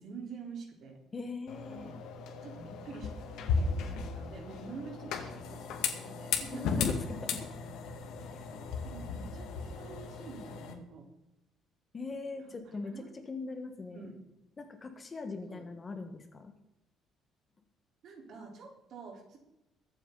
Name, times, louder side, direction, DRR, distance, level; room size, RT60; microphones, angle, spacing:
voice 1, 0.0-1.0 1.7-2.0 2.4-3.1 3.5-6.9 8.5-11.1 12.4-13.1 13.9-14.1 15.5-15.6 18.0-19.4, right 4 dB, 55° right, 1 dB, 4.2 m, -47 dB
voice 2, 1.1-1.9 6.5-7.5 8.3-8.5 11.9-14.1 14.6-16.5, left 3 dB, 25° left, 6 dB, 1.6 m, -41 dB
sound 1, 1.5-10.7, left 5 dB, 80° left, 2.2 m, -36 dB
23.0 x 9.0 x 4.1 m, 0.91 s
cardioid pair, 155°, 0 cm